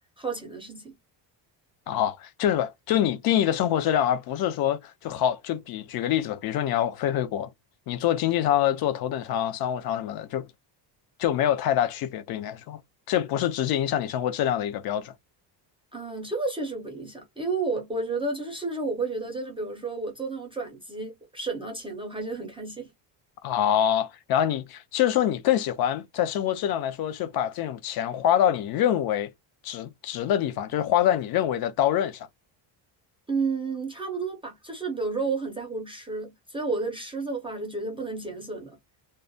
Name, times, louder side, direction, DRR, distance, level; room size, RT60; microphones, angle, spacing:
voice 1, 0.2-1.0 15.9-22.9 33.3-38.8, right 3 dB, 15° right, 0.4 m, -31 dB
voice 2, 1.9-7.5 7.9-10.5 11.2-12.8 13.1-15.1 23.4-29.3 29.6-32.3, left 11 dB, 55° left, 0.5 m, -25 dB
2.3 x 2.1 x 2.5 m
cardioid pair, 165°, 46 cm